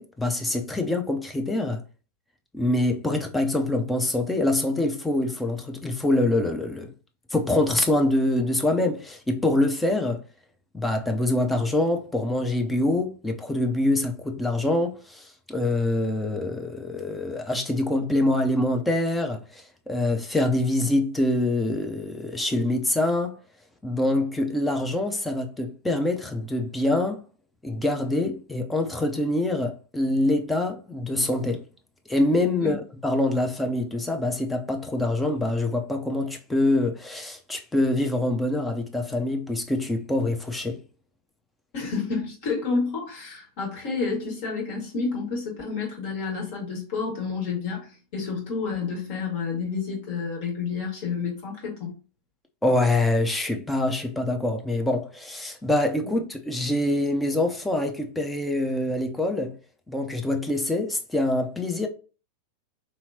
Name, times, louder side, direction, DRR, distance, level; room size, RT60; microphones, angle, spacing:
voice 1, 0.0-1.8 2.5-6.9 7.3-10.2 10.7-23.4 23.8-27.2 27.6-31.6 32.1-40.8 52.6-59.6 59.9-61.9, left 1 dB, 5° left, 0.5 m, -25 dB
voice 2, 41.7-52.0 56.0-56.1, left 4 dB, 45° left, 1.7 m, -30 dB
3.7 x 2.9 x 2.7 m
figure-of-eight pair, 90°, 0 cm